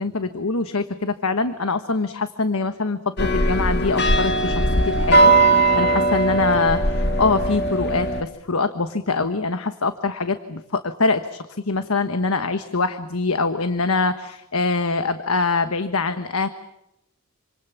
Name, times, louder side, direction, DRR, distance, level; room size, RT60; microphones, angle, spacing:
voice 1, 0.0-16.5, left 3 dB, 70° left, 10 dB, 1.3 m, -24 dB
sound 1, 3.2-8.2, right 2 dB, 50° left, 2.2 m, -19 dB
28.0 x 26.5 x 7.2 m, 0.86 s
head